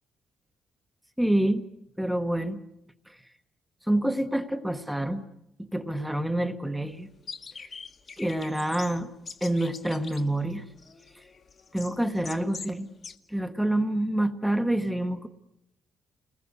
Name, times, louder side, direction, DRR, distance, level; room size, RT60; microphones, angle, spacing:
voice 1, 1.2-1.6 2.0-2.6 3.1-3.2 3.9-5.2 5.7-7.1 8.2-9.1 9.4-10.6 11.7-12.9 13.3-15.3, right 1 dB, ahead, 7 dB, 1.0 m, -27 dB
sound 1, 7.3-12.8 13.0-13.2, left 5 dB, 30° left, 1.2 m, -44 dB
30.0 x 20.5 x 8.1 m, 0.83 s
cardioid pair, 175°, 0 cm